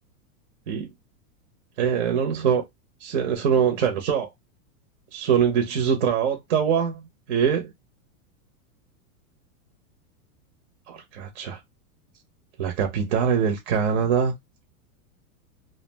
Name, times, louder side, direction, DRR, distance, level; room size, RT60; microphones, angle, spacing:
voice 1, 1.8-2.6 3.0-4.3 5.1-7.0 7.3-7.7 10.9-11.6 12.6-14.3, right 7 dB, 50° right, 0.6 m, -23 dB
2.4 x 2.0 x 3.2 m
supercardioid pair, 175°, 44 cm